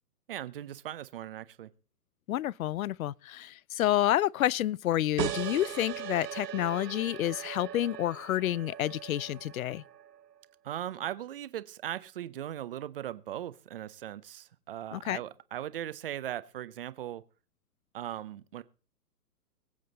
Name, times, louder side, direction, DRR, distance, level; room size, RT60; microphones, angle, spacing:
voice 1, 0.3-1.7 10.6-17.2 17.9-18.6, right 12 dB, 35° right, 0.7 m, -39 dB
voice 2, 2.3-9.8 14.9-15.2, left 13 dB, 60° left, 0.5 m, -29 dB
sound 1, 5.2-10.4, right 11 dB, 80° right, 0.9 m, -39 dB
22.0 x 7.6 x 4.0 m
hypercardioid pair, 155°, 48 cm